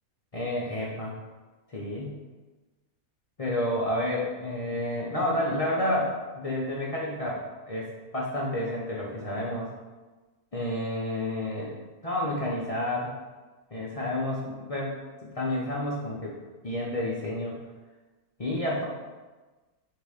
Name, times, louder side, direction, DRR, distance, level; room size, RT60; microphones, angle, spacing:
voice 1, 0.3-1.2 1.7-2.2 3.4-9.7 10.5-11.7 12.0-13.1 13.7-15.0 15.2-16.3 16.6-17.6 18.4-18.8, left 1 dB, 50° left, -5 dB, 0.4 m, -30 dB
3.3 x 3.3 x 4.9 m, 1.2 s
omnidirectional pair, 1.5 m